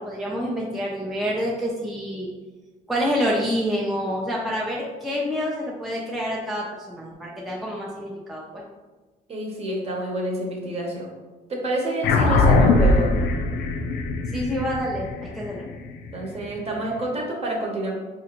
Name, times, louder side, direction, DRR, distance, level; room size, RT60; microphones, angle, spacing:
voice 1, 0.0-2.3 2.9-8.6 14.3-15.7, equal, ahead, -4 dB, 0.4 m, -27 dB
voice 2, 9.3-11.1 11.5-13.1 16.1-17.9, right 1 dB, 35° right, -1 dB, 0.9 m, -28 dB
sound 1, 12.0-16.8, left 3 dB, 80° left, 0.4 m, -21 dB
3.8 x 2.5 x 3.0 m, 1.3 s
cardioid pair, 110°, 17 cm